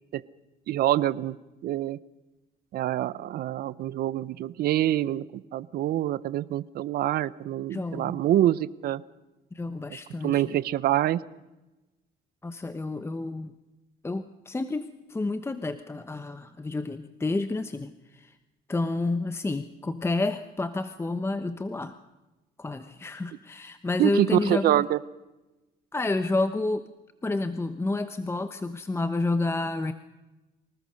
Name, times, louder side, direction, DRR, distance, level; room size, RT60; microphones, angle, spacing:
voice 1, 0.7-1.4 1.6-2.0 2.7-9.0 10.2-11.2 24.0-25.0, right 13 dB, 65° right, 18 dB, 0.8 m, -26 dB
voice 2, 7.7-8.2 9.5-10.5 12.4-13.5 14.0-18.3 18.7-22.0 22.6-24.9 25.9-26.9 27.2-29.9, left 2 dB, 15° left, 10 dB, 1.0 m, -30 dB
25.5 x 19.0 x 6.5 m, 1.0 s
cardioid pair, 110°, 17 cm